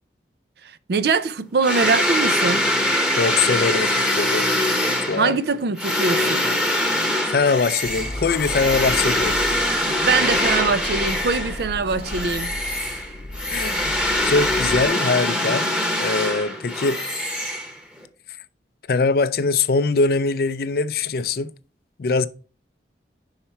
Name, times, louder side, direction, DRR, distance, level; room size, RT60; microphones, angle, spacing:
voice 1, 0.6-2.7 5.2-6.5 9.7-12.6, right 4 dB, 60° right, 0.4 m, -23 dB
sound 1, 1.6-11.7 12.0-18.0, left 1 dB, 5° right, 0.9 m, -23 dB
voice 2, 3.2-4.5 5.1-5.4 7.3-9.4 13.5-13.9 14.2-15.7 16.0-17.0 18.9-21.5 22.0-22.3, left 4 dB, 55° left, 0.4 m, -22 dB
sound 2, 7.8-14.9, left 1 dB, 35° left, 0.8 m, -35 dB
Female speech woman speaking, 11.8-12.5 13.9-16.2, left 2 dB, 90° left, 0.7 m, -39 dB
5.7 x 4.4 x 5.6 m
head